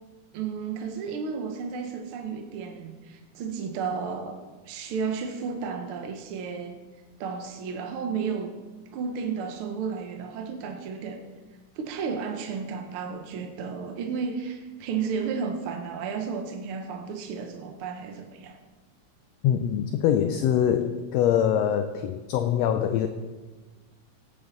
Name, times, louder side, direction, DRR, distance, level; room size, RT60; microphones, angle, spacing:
voice 1, 0.3-4.4 4.6-6.8 7.2-8.5 8.9-11.2 11.7-18.6, right 5 dB, 65° right, 4 dB, 1.4 m, -33 dB
voice 2, 19.4-23.1, left 9 dB, 80° left, 8 dB, 1.6 m, -24 dB
17.0 x 8.5 x 4.0 m, 1.3 s
omnidirectional pair, 3.4 m